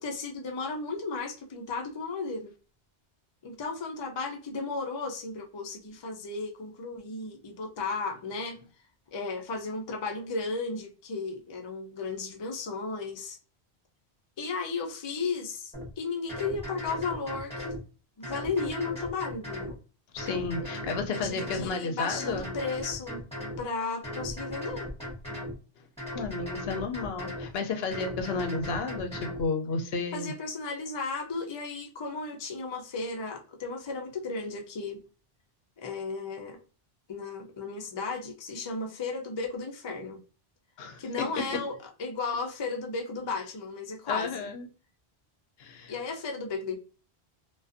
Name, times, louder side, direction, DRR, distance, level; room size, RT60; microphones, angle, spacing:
voice 1, 0.0-2.5 3.4-8.6 9.1-13.4 14.4-17.8 18.2-19.8 21.2-23.2 23.6-24.9 30.1-35.0 35.8-36.6 37.1-40.2 41.0-44.5 45.9-46.8, left 4 dB, 45° left, 0.3 m, -34 dB
sound 1, 15.7-15.9 16.3-17.8 18.2-19.8 20.2-21.7 22.1-23.6 24.0-25.6 26.0-27.5 27.9-29.4, left 1 dB, 5° left, 1.1 m, -37 dB
voice 2, 20.1-22.5 26.1-30.3 40.8-41.0 41.4-41.5 44.1-44.7 45.6-45.9, left 4 dB, 70° left, 0.8 m, -32 dB
2.4 x 2.3 x 2.4 m
omnidirectional pair, 1.1 m